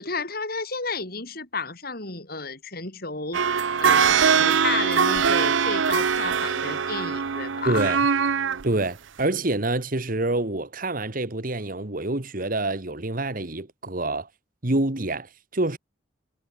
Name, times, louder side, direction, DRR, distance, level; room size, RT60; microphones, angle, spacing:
voice 1, 0.0-7.9, left 4 dB, 50° left, 6.4 m, -32 dB
sound 1, 3.3-8.6 9.2-9.3, right 6 dB, 85° right, 0.7 m, -22 dB
voice 2, 7.7-8.1 8.6-14.3 14.6-15.8, right 2 dB, 45° right, 1.8 m, -27 dB
head